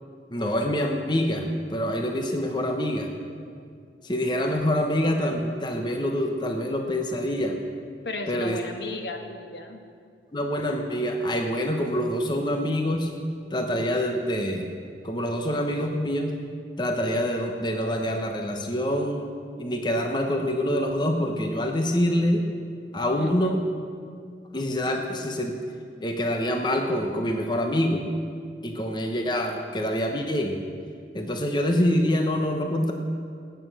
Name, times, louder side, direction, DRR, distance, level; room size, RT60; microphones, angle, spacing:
voice 1, 0.3-3.1 4.0-7.6 8.3-8.6 10.3-13.1 13.5-14.7 15.0-16.4 16.8-19.3 19.6-22.4 22.9-23.6 24.5-25.6 26.0-28.1 28.6-30.6 31.1-32.9, equal, 25° left, 3 dB, 1.0 m, -26 dB
voice 2, 8.0-9.8 23.2-23.5, left 2 dB, 70° left, 4 dB, 1.5 m, -35 dB
20.0 x 9.2 x 6.2 m, 2.3 s
head